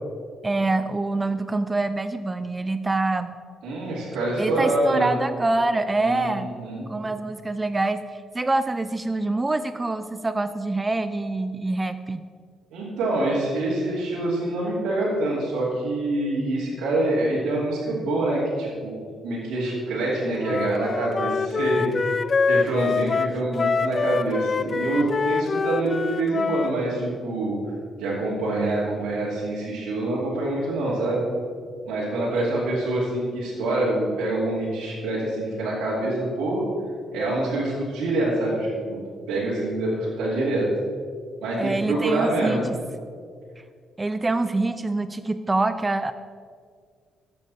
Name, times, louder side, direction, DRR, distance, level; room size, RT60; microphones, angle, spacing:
voice 1, 0.4-3.4 4.4-6.5 6.9-8.0 8.3-12.2 41.6-42.6 44.0-46.1, right 2 dB, 20° right, 11 dB, 0.4 m, -25 dB
voice 2, 3.6-5.1 6.0-6.9 12.7-18.9 19.2-22.2 22.5-27.6 28.0-31.2 31.9-36.6 37.1-39.0 39.3-40.7 41.4-42.6, right 2 dB, 80° right, -8 dB, 3.0 m, -25 dB
Wind instrument woodwind instrument, 20.4-26.7, left 4 dB, 40° left, 0.3 m, -25 dB
13.5 x 8.5 x 4.3 m, 2.1 s
cardioid pair, 90°, 0 cm